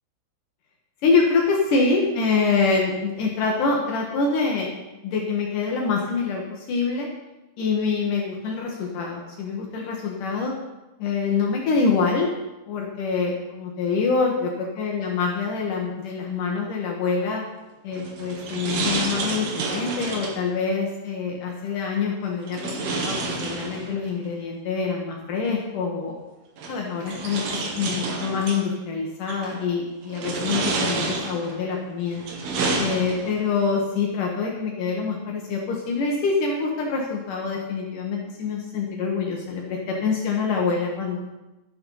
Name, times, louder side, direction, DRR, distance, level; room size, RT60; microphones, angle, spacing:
voice 1, 1.0-4.7 5.0-7.1 7.6-10.5 11.0-12.3 12.7-17.4 17.8-26.1 26.7-32.2 32.8-41.2, left 4 dB, 80° left, -1 dB, 1.8 m, -25 dB
sound 1, 17.9-20.5 22.5-24.1 25.5-25.6 26.6-28.6 29.3-29.7 30.1-31.6 32.1-33.5, right 3 dB, 60° right, 2.9 m, -29 dB
12.0 x 8.8 x 5.6 m, 1.0 s
omnidirectional pair, 5.9 m